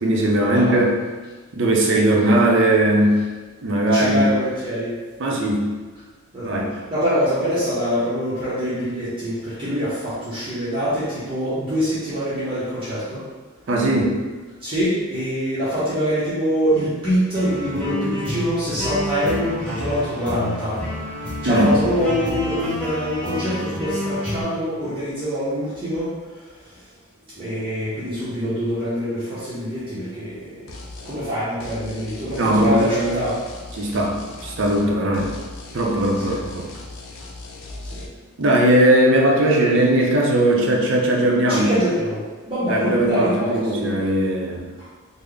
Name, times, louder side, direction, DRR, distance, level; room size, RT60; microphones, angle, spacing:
voice 1, 0.0-1.0 1.5-3.2 3.6-4.3 5.2-5.7 6.4-6.7 13.7-14.2 21.4-21.8 32.3-33.2 33.8-34.1 34.4-35.3 35.7-36.6 38.4-41.7 42.7-44.6, right 1 dB, 60° right, 0 dB, 0.5 m, -18 dB
voice 2, 0.5-0.8 3.9-5.0 6.3-13.2 14.6-20.8 21.4-26.1 26.6-26.8 27.3-30.7 31.0-33.4 34.8-35.1 36.2-36.4 37.8-38.0 41.5-43.9 44.8-44.9, equal, 25° right, -12 dB, 0.7 m, -24 dB
sound 1, 17.3-24.4, left 1 dB, 5° left, 0.9 m, -29 dB
sound 2, 30.7-31.2 31.6-34.9 35.1-38.1, left 2 dB, 70° left, 0.5 m, -38 dB
3.7 x 2.0 x 3.3 m, 1.3 s
head